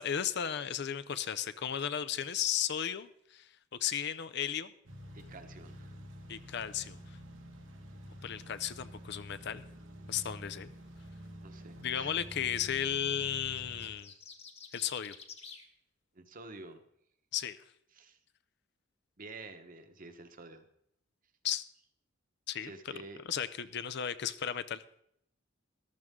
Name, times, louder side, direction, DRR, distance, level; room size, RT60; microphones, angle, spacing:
voice 1, 0.0-3.5 3.8-4.7 6.3-7.2 8.2-9.6 10.1-10.7 11.8-14.1 14.7-15.2 17.3-17.6 21.4-21.6 22.5-22.7 23.3-24.8, left 9 dB, 60° left, 13 dB, 0.6 m, -34 dB
sound 1, 4.8-13.9, equal, 85° right, 1.9 m, -49 dB
voice 2, 5.1-6.0 11.4-12.1 16.1-16.8 17.9-18.2 19.2-20.6 22.6-23.2, right 3 dB, 45° right, 7 dB, 1.2 m, -49 dB
sound 2, 13.5-15.7, left 5 dB, 30° left, 1.4 m, -50 dB
14.0 x 12.5 x 3.7 m, 0.74 s
head